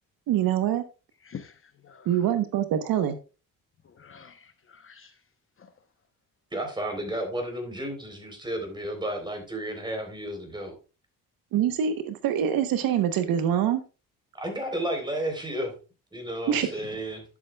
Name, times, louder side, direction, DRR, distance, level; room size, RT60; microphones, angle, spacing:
voice 1, 0.3-0.8 2.1-3.2 11.5-13.8 16.5-16.7, right 9 dB, 80° right, 1.0 m, -24 dB
voice 2, 1.2-2.3 3.8-5.2 5.6-5.7 16.5-17.0, left 7 dB, 35° left, 0.8 m, -47 dB
voice 3, 6.5-10.7 14.3-15.7 16.1-17.2, right 1 dB, 15° right, 3.6 m, -32 dB
11.0 x 7.2 x 2.3 m
cardioid pair, 95°, 35 cm